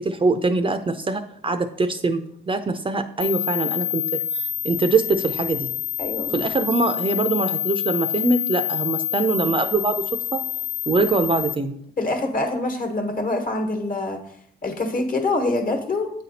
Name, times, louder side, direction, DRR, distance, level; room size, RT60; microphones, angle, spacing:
voice 1, 0.0-2.2 2.5-5.7 6.3-10.0 10.3-10.4 10.9-11.8, right 3 dB, 25° right, 8 dB, 0.5 m, -23 dB
sound 1, 3.2-11.5, left 10 dB, 70° left, 0.5 m, -27 dB
voice 2, 6.0-6.4 12.0-14.2 14.6-16.1, left 2 dB, 45° left, 4 dB, 1.4 m, -25 dB
8.2 x 4.2 x 4.1 m, 0.69 s
cardioid pair, 90°, 20 cm